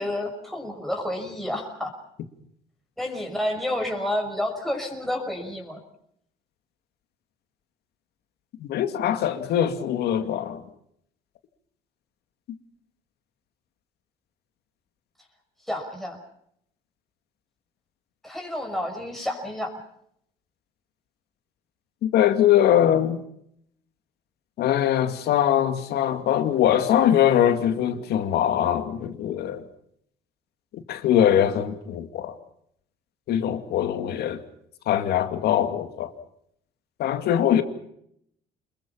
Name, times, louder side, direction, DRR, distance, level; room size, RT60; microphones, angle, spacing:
voice 1, 0.0-1.9 3.0-5.8 15.7-16.2 18.2-19.7, left 1 dB, ahead, 5.7 m, -30 dB
voice 2, 8.6-10.6 22.0-23.2 24.6-29.6 30.9-32.3 33.3-34.4 34.9-36.1 37.0-37.6, left 10 dB, 75° left, 2.4 m, -22 dB
27.5 x 21.5 x 5.7 m
cardioid pair, 110°, 17 cm